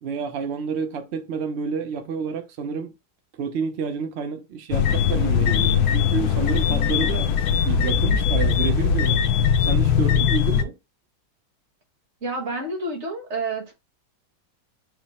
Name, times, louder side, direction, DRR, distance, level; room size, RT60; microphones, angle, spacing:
voice 1, 0.0-2.9 3.4-7.3 7.7-9.2 9.6-10.8, right 6 dB, 80° right, 0.5 m, -29 dB
sound 1, 4.7-10.6, left 7 dB, 70° left, 1.0 m, -20 dB
voice 2, 12.2-13.7, right 2 dB, 45° right, 1.4 m, -29 dB
4.6 x 2.1 x 4.1 m
omnidirectional pair, 1.9 m